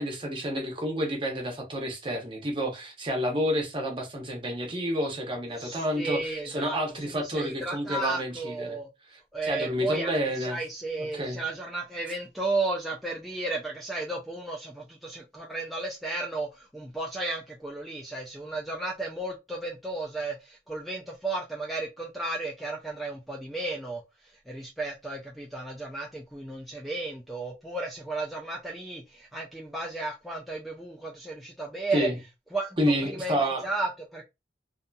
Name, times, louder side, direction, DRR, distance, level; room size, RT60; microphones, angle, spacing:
voice 1, 0.0-8.8 9.1-10.6 11.0-11.4 31.9-32.2 32.8-33.6, equal, 30° right, 0.7 m, -29 dB
voice 2, 5.5-8.9 9.3-32.1 32.5-34.3, right 2 dB, ahead, 0.3 m, -34 dB
2.6 x 2.6 x 2.2 m
head